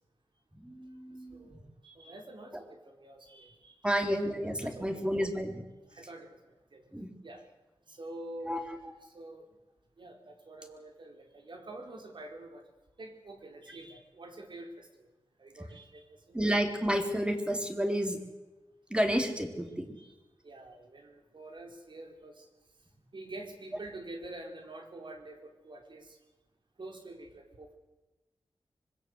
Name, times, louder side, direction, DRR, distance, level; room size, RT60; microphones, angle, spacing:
voice 1, 0.5-1.6 3.8-5.6 6.9-7.1 8.4-8.6 16.3-18.2 18.9-20.0, equal, 10° right, 5 dB, 3.8 m, -31 dB
voice 2, 1.3-3.9 4.6-5.0 5.9-6.9 7.2-7.4 7.9-8.8 9.1-9.6 10.0-12.7 13.0-15.1 15.4-16.4 20.0-20.1 20.4-22.5 23.1-26.2 26.8-27.8, right 2 dB, 60° right, 4 dB, 4.8 m, -47 dB
25.0 x 21.5 x 8.2 m, 1.1 s
wide cardioid pair, 95°, 9 cm